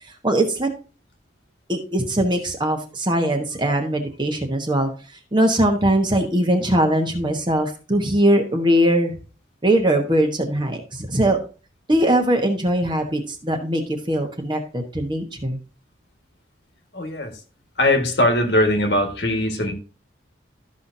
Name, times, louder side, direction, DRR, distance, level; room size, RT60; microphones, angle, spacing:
voice 1, 0.2-0.7 1.7-4.9 5.3-9.2 9.6-11.4 11.9-13.8 14.1-15.6, right 1 dB, 25° right, 1.1 m, -21 dB
voice 2, 16.9-17.4 17.8-19.7, left 1 dB, 60° left, 1.6 m, -20 dB
13.0 x 5.7 x 2.7 m
head